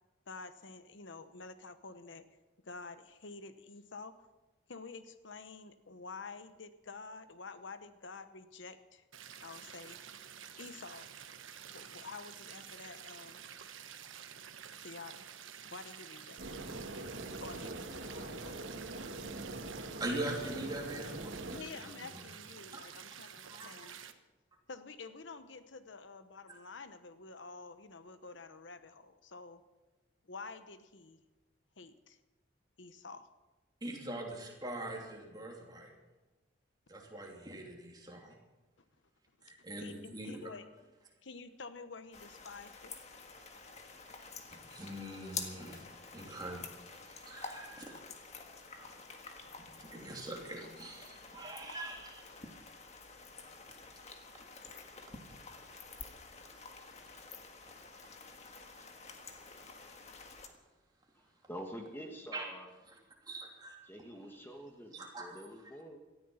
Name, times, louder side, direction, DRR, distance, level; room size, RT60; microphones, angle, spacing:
voice 1, 0.3-2.3 2.6-4.2 4.7-9.0 9.4-10.0 10.6-11.1 11.7-13.4 14.8-15.3 15.7-16.4 17.4-18.6 21.5-24.0 24.7-29.6 30.2-31.2 31.8-32.2 32.8-33.3 39.8-40.6 41.2-42.9, left 4 dB, 75° left, 11 dB, 1.0 m, -49 dB
sound 1, 9.1-24.1, right 8 dB, 90° right, 1.2 m, -50 dB
sound 2, 16.4-21.6, right 2 dB, 70° right, 2.2 m, -43 dB
voice 2, 20.0-22.2 22.7-22.8 23.5-23.8 33.8-35.9 36.9-38.3 39.4-40.5 44.2-45.8 46.1-47.9 48.7-48.9 49.8-52.2 62.3-62.5 63.2-63.8 64.9-65.4, right 1 dB, 20° right, 0 dB, 3.0 m, -43 dB
sound 3, 42.1-60.5, left 5 dB, 35° left, 1.6 m, -49 dB
voice 3, 61.1-62.7 63.8-66.0, equal, 10° left, 2 dB, 1.5 m, -47 dB
18.5 x 14.0 x 5.7 m, 1.2 s
head